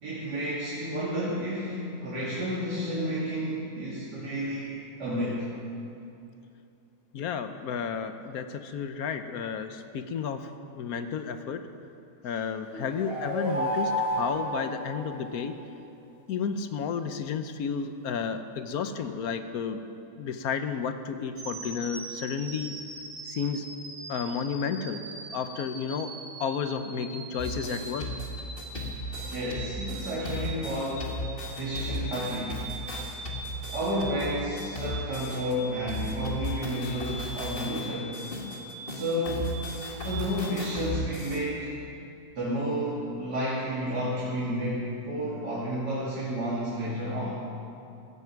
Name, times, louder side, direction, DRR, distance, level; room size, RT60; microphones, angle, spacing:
voice 1, 0.0-4.7 5.0-5.5 29.2-31.1 31.5-32.7 33.7-38.2 38.9-39.7 40.0-41.7 42.3-47.4, equal, 85° right, -7 dB, 3.1 m, -31 dB
voice 2, 7.1-10.5 10.7-11.6 12.2-15.5 16.3-19.8 20.2-22.7 23.2-23.6 24.1-25.0 25.3-26.1 26.4-28.1, left 6 dB, 65° left, 9 dB, 1.2 m, -32 dB
sound 1, 12.7-15.6, equal, 90° left, 3.3 m, -31 dB
sound 2, 21.4-40.7, right 2 dB, 70° right, 2.3 m, -42 dB
sound 3, 27.4-35.5 35.9-41.4, left 1 dB, 35° left, 1.8 m, -36 dB
16.0 x 15.5 x 4.7 m, 2.6 s
omnidirectional pair, 1.8 m